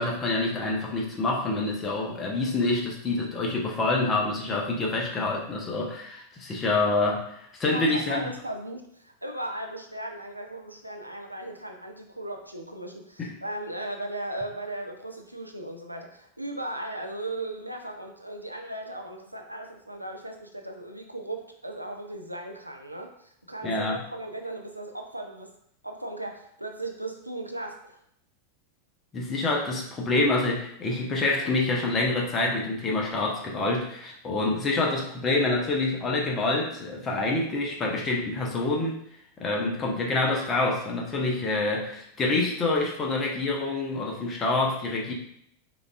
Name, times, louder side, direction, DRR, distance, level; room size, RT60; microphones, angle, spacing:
voice 1, 0.0-8.2 13.2-13.3 23.6-24.0 29.1-39.0 39.4-45.1, left 2 dB, 25° left, -1 dB, 0.8 m, -27 dB
voice 2, 7.6-25.5 25.8-28.0, right 1 dB, 85° right, 3 dB, 0.4 m, -37 dB
4.9 x 2.5 x 2.4 m, 0.71 s
figure-of-eight pair, 90°, 0 cm